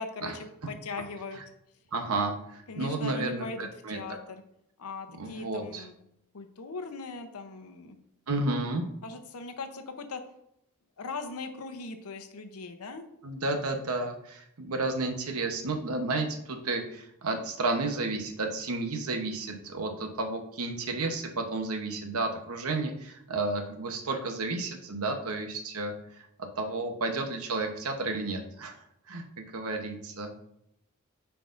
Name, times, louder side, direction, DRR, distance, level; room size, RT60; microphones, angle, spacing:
voice 1, 0.0-1.4 2.7-4.4 4.8-6.0 6.3-8.0 9.0-10.2 11.0-13.1, left 3 dB, 85° left, 7 dB, 0.8 m, -39 dB
voice 2, 1.9-4.0 5.2-5.9 8.3-8.8 13.2-26.2 26.6-30.3, right 2 dB, 80° right, 5 dB, 0.9 m, -32 dB
9.1 x 4.6 x 2.6 m, 0.77 s
head